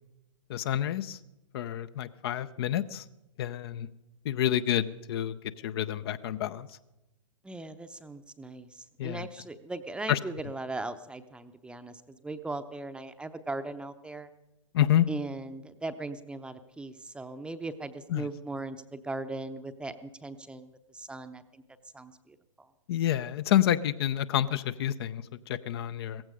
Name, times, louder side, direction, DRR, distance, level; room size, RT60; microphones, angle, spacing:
voice 1, 0.5-1.2 1.5-3.0 3.4-3.9 4.2-5.4 5.6-6.7 9.0-9.3 10.1-10.2 14.7-15.1 18.1-18.3 22.9-26.2, left 11 dB, 45° left, 13 dB, 0.6 m, -28 dB
voice 2, 7.4-14.3 15.1-21.6 21.9-22.7, right 2 dB, 5° right, 9 dB, 0.7 m, -39 dB
17.0 x 15.0 x 5.0 m, 0.94 s
figure-of-eight pair, 110°, 17 cm